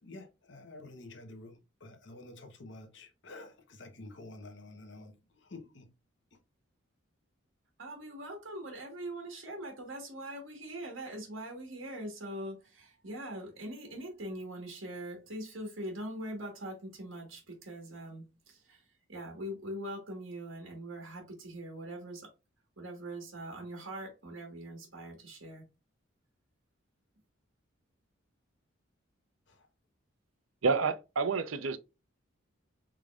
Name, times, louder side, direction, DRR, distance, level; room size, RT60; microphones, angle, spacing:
voice 1, 0.0-5.9 6.3-6.4 29.5-29.7, left 2 dB, 65° left, 1.0 m, -49 dB
voice 2, 7.8-18.8 19.1-22.3 22.8-25.7, right 1 dB, 70° right, 1.5 m, -42 dB
voice 3, 30.6-31.8, right 4 dB, 90° right, 0.6 m, -29 dB
5.0 x 3.7 x 2.4 m
head